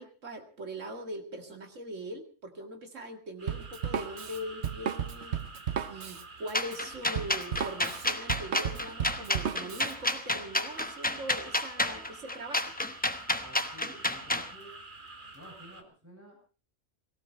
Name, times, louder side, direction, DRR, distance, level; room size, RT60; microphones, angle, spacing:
voice 1, 0.0-5.4 5.9-12.8, right 1 dB, 80° right, 5 dB, 2.4 m, -41 dB
sound 1, 3.4-15.8, right 3 dB, 40° right, 1.8 m, -48 dB
Drum kit, 3.5-9.9, right 8 dB, 65° right, 1.2 m, -34 dB
sound 2, 6.5-14.5, left 1 dB, 10° left, 0.8 m, -30 dB
voice 2, 13.4-14.7 15.3-16.4, right 1 dB, 10° right, -2 dB, 7.8 m, -51 dB
18.0 x 17.0 x 4.4 m, 0.37 s
omnidirectional pair, 1.3 m